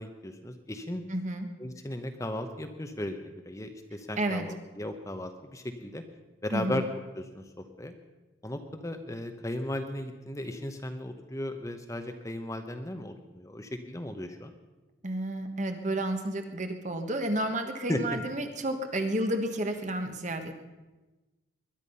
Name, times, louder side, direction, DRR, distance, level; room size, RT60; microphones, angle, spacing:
voice 1, 0.0-1.0 1.6-6.0 6.4-6.8 7.2-7.9 8.4-14.5 17.9-18.2, left 1 dB, 15° left, 6 dB, 0.9 m, -36 dB
voice 2, 1.1-1.5 4.2-4.5 6.5-6.9 15.0-20.5, right 1 dB, 35° right, 6 dB, 1.3 m, -31 dB
21.0 x 11.5 x 5.5 m, 1.1 s
head